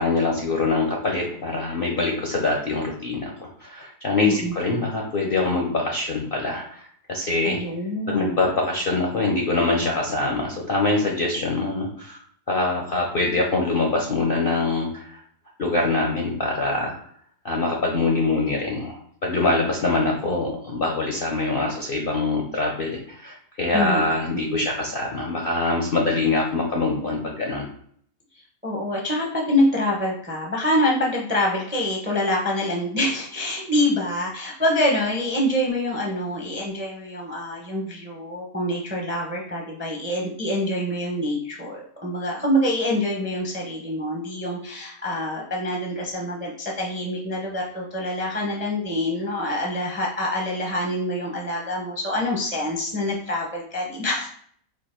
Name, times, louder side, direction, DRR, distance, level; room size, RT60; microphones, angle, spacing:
voice 1, 0.0-7.6 8.1-12.2 12.5-15.2 15.6-16.9 17.4-27.7, left 3 dB, 50° left, 0 dB, 0.6 m, -24 dB
voice 2, 4.2-4.9 7.4-8.4 23.7-24.0 24.5-24.7 28.6-54.3, left 1 dB, 15° right, -2 dB, 0.5 m, -26 dB
4.5 x 2.5 x 4.4 m, 0.62 s
omnidirectional pair, 1.7 m